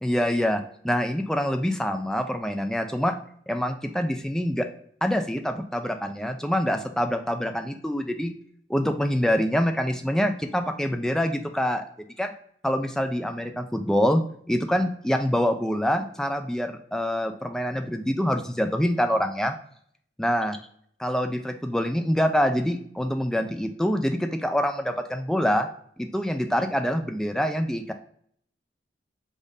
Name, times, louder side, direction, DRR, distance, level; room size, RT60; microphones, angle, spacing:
voice 1, 0.0-3.2 3.5-4.7 5.0-8.3 8.7-11.8 12.2-12.3 12.6-14.2 14.5-19.5 20.2-20.6 21.0-25.7 26.0-27.9, equal, 5° left, 6 dB, 0.3 m, -25 dB
5.2 x 2.5 x 3.8 m, 0.63 s
head